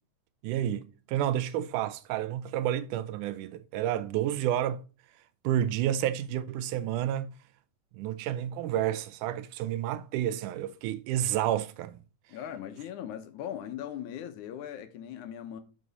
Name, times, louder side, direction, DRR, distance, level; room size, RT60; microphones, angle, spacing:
voice 1, 0.4-4.8 5.4-7.3 7.9-12.0, right 11 dB, 90° right, 2.1 m, -30 dB
voice 2, 12.3-15.6, left 10 dB, 75° left, 2.2 m, -39 dB
6.2 x 6.0 x 4.0 m
omnidirectional pair, 3.5 m